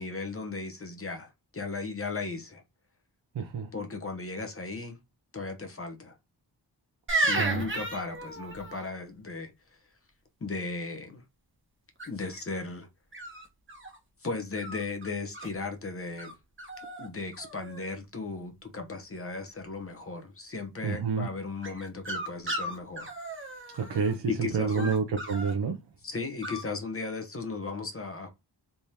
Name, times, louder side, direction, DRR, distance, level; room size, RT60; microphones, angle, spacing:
voice 1, 0.0-2.6 3.7-5.0 5.3-6.1 7.3-9.5 10.4-11.2 12.1-12.9 14.2-16.3 17.0-23.1 24.3-24.9 26.0-28.3, left 3 dB, 30° left, 0.9 m, -36 dB
voice 2, 3.3-3.7 7.3-7.7 20.8-21.3 23.7-25.8, right 5 dB, 65° right, 0.7 m, -29 dB
sound 1, 7.1-8.8 12.0-12.4 13.1-14.0 14.6-15.5 16.2-16.3 16.6-17.1 17.3-17.9 21.6-24.1 24.7-25.5 26.4-26.6, right 2 dB, 25° right, 1.0 m, -34 dB
3.5 x 3.2 x 2.7 m
wide cardioid pair, 85°, 44 cm